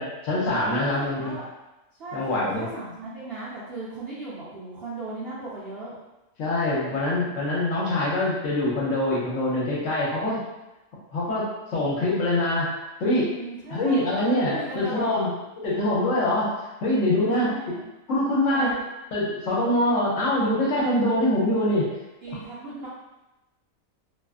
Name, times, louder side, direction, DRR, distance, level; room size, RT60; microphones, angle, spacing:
voice 1, 0.0-1.4 2.1-2.7 6.4-10.4 11.1-12.7 13.0-13.3 13.7-15.3 15.6-16.5 16.8-17.7 18.1-18.7 19.1-21.9, left 1 dB, 65° left, -5 dB, 1.0 m, -24 dB
voice 2, 0.8-1.5 2.0-6.0 13.4-15.3 17.1-17.8 18.5-18.7 22.2-22.9, right 2 dB, 65° right, -9 dB, 0.6 m, -37 dB
2.5 x 2.3 x 2.3 m, 1.0 s
omnidirectional pair, 1.5 m